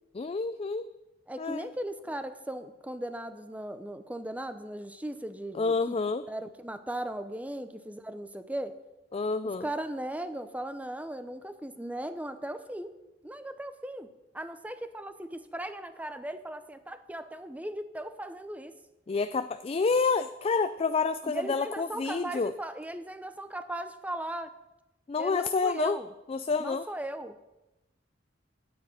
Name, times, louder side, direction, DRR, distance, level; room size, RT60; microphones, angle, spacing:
voice 1, 0.1-0.9 1.4-1.7 5.5-6.2 9.1-9.7 19.1-22.5 25.1-26.0 26.3-26.9, left 4 dB, 30° left, 11 dB, 0.4 m, -28 dB
voice 2, 1.3-5.9 6.3-8.8 9.6-13.0 13.2-14.1 14.3-18.7 21.2-24.5 25.2-26.1 26.6-27.4, right 1 dB, 10° right, 10 dB, 0.8 m, -37 dB
9.5 x 9.2 x 8.7 m, 0.98 s
head